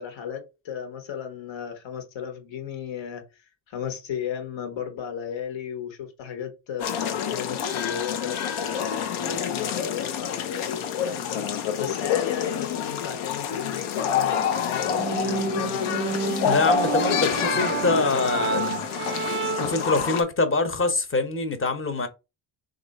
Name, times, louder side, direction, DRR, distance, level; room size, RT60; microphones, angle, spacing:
voice 1, 0.0-3.2 3.7-15.9 17.2-18.7, left 8 dB, 70° left, 1.2 m, -35 dB
sound 1, 6.8-20.2, left 7 dB, 85° left, 0.7 m, -27 dB
sound 2, 14.8-19.9, right 6 dB, 30° right, 0.4 m, -30 dB
voice 2, 16.4-18.8 19.5-22.1, left 3 dB, 25° left, 0.9 m, -25 dB
3.0 x 2.6 x 4.0 m
cardioid pair, 80°, 48 cm